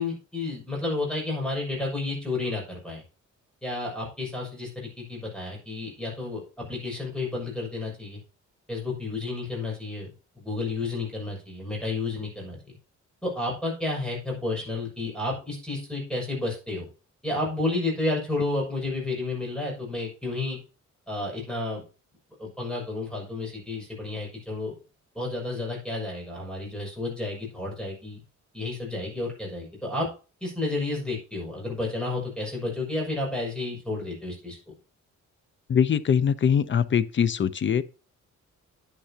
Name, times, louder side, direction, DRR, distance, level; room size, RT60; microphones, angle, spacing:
voice 1, 0.0-3.0 3.6-8.2 8.7-12.6 13.2-16.9 17.2-20.6 21.1-21.8 22.4-24.7 25.1-28.2 28.5-30.1 30.4-34.6, left 2 dB, 5° left, 6.4 m, -31 dB
voice 2, 35.7-37.8, left 7 dB, 40° left, 0.6 m, -22 dB
10.0 x 9.9 x 2.9 m
wide cardioid pair, 150°, 30 cm